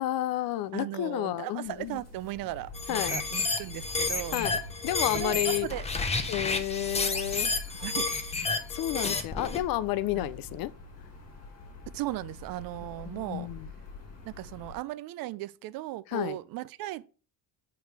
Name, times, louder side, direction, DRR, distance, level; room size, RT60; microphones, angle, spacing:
voice 1, 0.0-2.0 2.9-3.2 4.3-4.6 4.8-5.7 6.3-7.5 8.7-10.7 13.1-13.7 16.1-16.4, left 14 dB, 50° left, 0.5 m, -31 dB
voice 2, 0.7-4.4 5.1-5.9 6.1-6.3 7.7-8.1 10.1-10.3 11.9-13.5 14.3-17.1, right 16 dB, 50° right, 0.5 m, -37 dB
sound 1, 1.7-14.8, left 2 dB, 35° left, 2.0 m, -44 dB
sound 2, 2.7-9.6, left 3 dB, 15° left, 0.7 m, -31 dB
8.4 x 3.5 x 4.7 m
cardioid pair, 130°, 45 cm